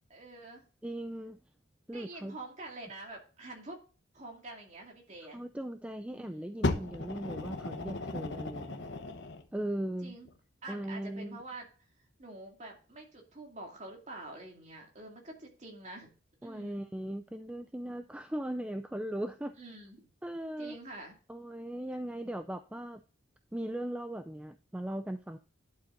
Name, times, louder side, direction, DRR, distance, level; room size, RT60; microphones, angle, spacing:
voice 1, 0.1-0.6 1.9-3.8 4.1-5.4 6.1-6.5 10.0-10.3 10.6-11.7 12.2-16.1 16.4-16.8 19.6-20.1 20.6-21.2, right 2 dB, 35° right, 1 dB, 2.4 m, -47 dB
voice 2, 0.8-1.4 1.9-2.4 5.3-8.9 9.5-10.2 10.7-11.4 16.4-19.6 20.2-20.8 21.3-23.0 23.5-25.4, right 1 dB, 5° right, 8 dB, 0.3 m, -38 dB
Fire, 6.6-9.5 10.3-10.4, left 2 dB, 60° left, 1.0 m, -35 dB
11.0 x 7.4 x 2.6 m, 0.37 s
head